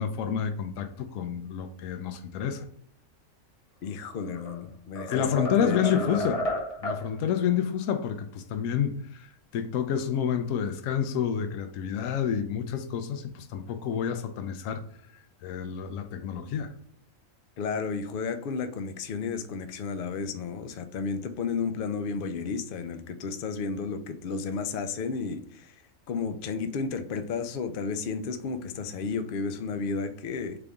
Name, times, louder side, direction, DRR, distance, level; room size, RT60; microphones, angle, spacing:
voice 1, 0.0-2.7 5.1-6.5 6.8-14.8 15.4-16.7, left 8 dB, 75° left, 1.0 m, -29 dB
voice 2, 3.8-6.3 17.6-25.7 26.1-30.6, left 5 dB, 60° left, 0.6 m, -32 dB
sound 1, 4.1-4.6 5.0-7.1, left 1 dB, 30° left, 0.9 m, -32 dB
3.9 x 3.4 x 3.5 m
omnidirectional pair, 1.4 m